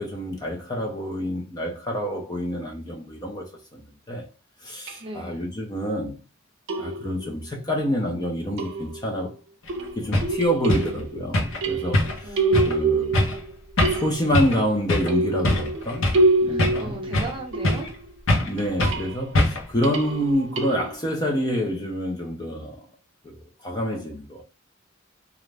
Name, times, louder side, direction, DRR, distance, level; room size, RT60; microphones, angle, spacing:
voice 1, 0.0-4.3 4.6-6.2 6.8-9.3 10.0-12.3 12.6-13.2 13.9-16.1 16.4-17.2 18.3-22.9 23.2-24.4, equal, 20° left, 0.4 m, -27 dB
sound 1, 4.9-5.0 6.7-7.3 8.6-9.2 9.7-11.2 11.6-13.5 13.8-14.4 15.1-18.1 18.6-19.2 19.8-20.9, right 2 dB, 65° right, 0.6 m, -26 dB
voice 2, 5.0-5.5 12.2-13.3 16.4-17.9, right 2 dB, 25° right, 0.7 m, -38 dB
sound 2, 9.7-9.8 10.1-10.3 10.7-10.9 11.3-11.6 11.9-12.3 12.5-12.8 13.1-13.4 13.8-14.1 14.3-14.6 14.9-15.1 15.4-16.3 16.6-17.4 17.6-18.0 18.3-18.5 18.8-19.0 19.4-19.7, left 1 dB, 70° left, 0.7 m, -22 dB
2.4 x 2.1 x 3.2 m
head